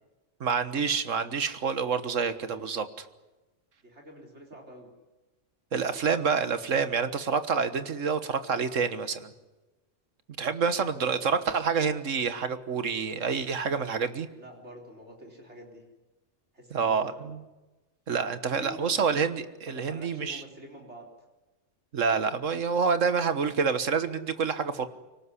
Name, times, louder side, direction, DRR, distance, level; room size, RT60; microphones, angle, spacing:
voice 1, 0.4-3.1 5.7-9.3 10.4-14.3 16.7-17.4 18.1-20.4 21.9-24.9, right 5 dB, 80° right, 11 dB, 1.7 m, -28 dB
voice 2, 3.8-4.9 10.6-11.4 14.4-15.8 16.5-17.4 18.5-19.1 19.6-21.1, right 1 dB, 65° right, 1 dB, 4.4 m, -47 dB
24.5 x 18.5 x 9.8 m, 1.1 s
omnidirectional pair, 1.3 m